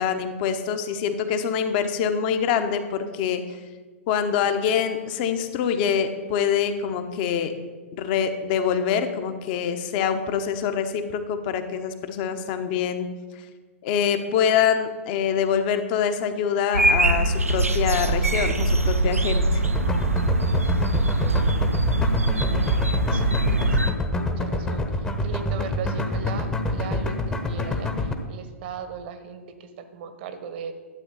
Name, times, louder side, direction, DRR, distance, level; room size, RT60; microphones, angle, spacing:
voice 1, 0.0-3.6 4.1-7.5 7.9-13.1 13.8-19.6, left 7 dB, 40° left, 8 dB, 1.0 m, -25 dB
sound 1, 16.7-23.9, right 2 dB, 80° right, 0.9 m, -22 dB
sound 2, 19.6-28.1, left 2 dB, 10° left, 1.0 m, -26 dB
voice 2, 22.4-22.8 23.1-30.7, right 6 dB, 45° right, 10 dB, 1.2 m, -38 dB
12.0 x 8.1 x 5.5 m, 1.4 s
figure-of-eight pair, 105°, 8 cm